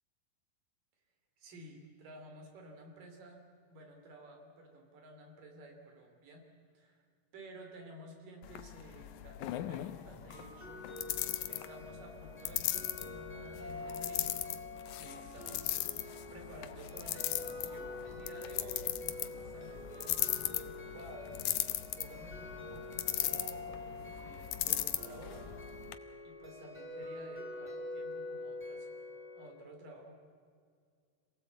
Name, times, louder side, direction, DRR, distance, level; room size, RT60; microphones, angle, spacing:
voice 1, 1.4-6.4 6.7-7.0 7.3-10.8 11.5-14.6 14.9-16.0 16.3-21.4 22.0-25.5 26.2-28.9 29.3-30.2, right 1 dB, 65° right, 3 dB, 4.8 m, -53 dB
sound 1, 8.4-26.0, left 13 dB, 75° left, 2.0 m, -38 dB
sound 2, 10.3-29.5, left 2 dB, 5° left, 4.4 m, -46 dB
27.0 x 18.0 x 8.2 m, 2.1 s
omnidirectional pair, 4.2 m